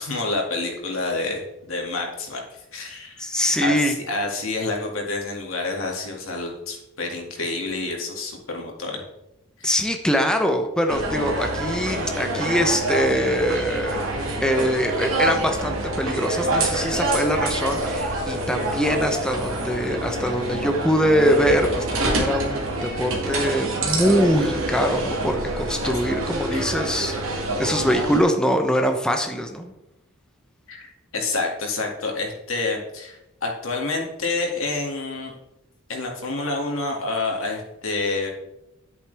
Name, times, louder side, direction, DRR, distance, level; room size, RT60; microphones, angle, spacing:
voice 1, 0.0-3.2 3.6-9.0 9.6-9.7 25.8-25.9 26.5-26.7 30.7-35.3 35.9-38.3, left 3 dB, 85° left, 0 dB, 2.2 m, -28 dB
voice 2, 3.2-3.9 9.6-29.7, equal, 5° left, 4 dB, 0.8 m, -23 dB
sound 1, 10.9-28.2, right 2 dB, 85° right, 2.1 m, -26 dB
10.5 x 8.4 x 3.4 m, 0.90 s
head